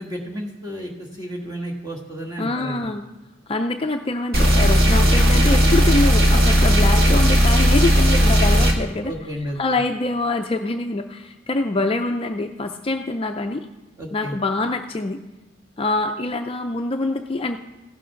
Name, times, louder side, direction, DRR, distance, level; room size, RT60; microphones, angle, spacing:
voice 1, 0.0-2.9 9.0-9.8 14.0-14.4, equal, 20° right, -2 dB, 1.6 m, -32 dB
voice 2, 2.4-3.0 3.5-9.1 9.6-13.7 14.1-15.2 15.8-17.6, left 2 dB, 25° left, 5 dB, 0.4 m, -25 dB
sound 1, 4.3-8.7, equal, 45° right, 1.6 m, -15 dB
15.5 x 6.2 x 5.7 m, 1.1 s
head